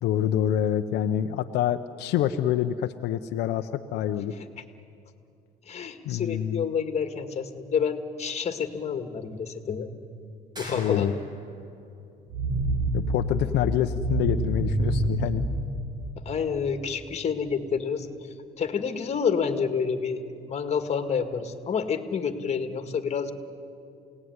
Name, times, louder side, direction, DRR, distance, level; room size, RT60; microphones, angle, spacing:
voice 1, 0.0-4.4 6.0-6.6 10.7-11.1 12.9-15.4, left 11 dB, 85° left, 7 dB, 0.8 m, -26 dB
voice 2, 5.7-9.9 10.6-11.2 16.2-18.1 18.6-20.2 20.5-23.3, left 6 dB, 40° left, 8 dB, 2.1 m, -28 dB
sound 1, 10.6-11.6, equal, 25° right, 6.1 m, -43 dB
sound 2, 12.3-16.3, right 2 dB, 55° right, 6.7 m, -27 dB
28.5 x 18.0 x 9.6 m, 2.5 s
cardioid pair, 110°, 17 cm